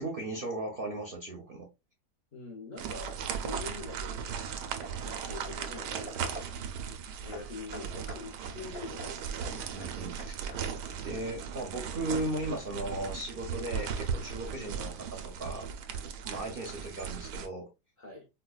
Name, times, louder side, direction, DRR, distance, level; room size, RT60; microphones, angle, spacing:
voice 1, 0.0-1.7 9.5-10.3 11.0-15.7 16.2-17.7, right 1 dB, 50° right, 0.6 m, -37 dB
voice 2, 2.3-4.4 5.0-6.4 6.7-6.8 7.2-9.4 14.5-14.7 18.0-18.3, left 4 dB, 50° left, 0.5 m, -45 dB
sound 1, 2.8-17.5, right 7 dB, 90° right, 1.2 m, -37 dB
Hammer / Wood, 3.4-3.6 4.2-6.7 7.3-11.0, equal, 80° left, 2.6 m, -49 dB
4.6 x 2.2 x 2.2 m
omnidirectional pair, 1.7 m